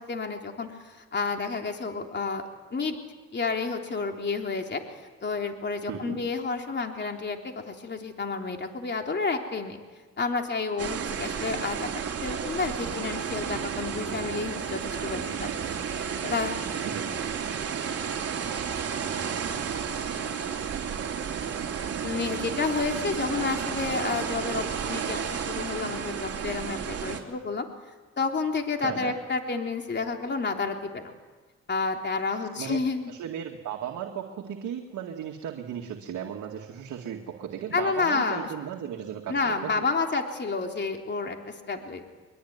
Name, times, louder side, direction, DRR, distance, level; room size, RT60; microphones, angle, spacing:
voice 1, 0.0-2.4 2.7-3.0 3.3-4.8 5.2-9.8 10.2-11.9 12.2-16.6 22.0-27.7 28.2-31.1 31.7-33.1 37.7-38.5 39.3-42.0, left 4 dB, 35° left, 3 dB, 3.5 m, -30 dB
voice 2, 5.9-6.2 16.9-17.1 24.3-24.4 28.8-29.2 32.6-39.9, right 9 dB, 75° right, 2 dB, 2.2 m, -36 dB
sound 1, 10.8-27.2, right 7 dB, 50° right, 3.5 m, -32 dB
23.0 x 22.5 x 9.6 m, 1.3 s
cardioid pair, 90°, 30 cm